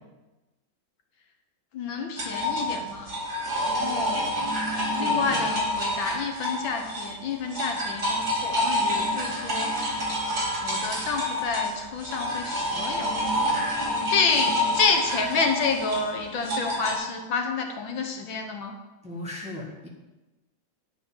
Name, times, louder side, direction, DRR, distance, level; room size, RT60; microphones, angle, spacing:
voice 1, 1.7-3.1 3.7-4.2 4.9-9.7 10.6-13.2 13.7-13.8 14.1-18.7, left 5 dB, 70° left, 4 dB, 1.8 m, -29 dB
sound 1, 2.2-7.2 7.4-17.0, equal, 45° right, 3.4 m, -28 dB
voice 2, 5.0-5.4 19.0-19.9, left 1 dB, 5° right, -2 dB, 1.4 m, -38 dB
9.5 x 5.6 x 8.2 m, 1.1 s
omnidirectional pair, 2.3 m